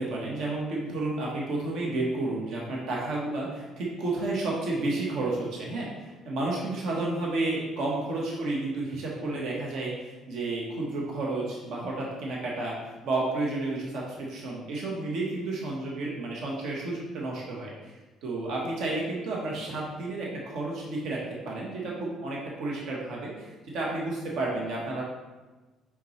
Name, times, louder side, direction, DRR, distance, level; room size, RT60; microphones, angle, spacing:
voice 1, 0.0-12.8 13.0-17.9 18.2-25.0, right 2 dB, 70° right, -3 dB, 1.2 m, -31 dB
5.7 x 5.3 x 3.2 m, 1.2 s
cardioid pair, 140°, 0 cm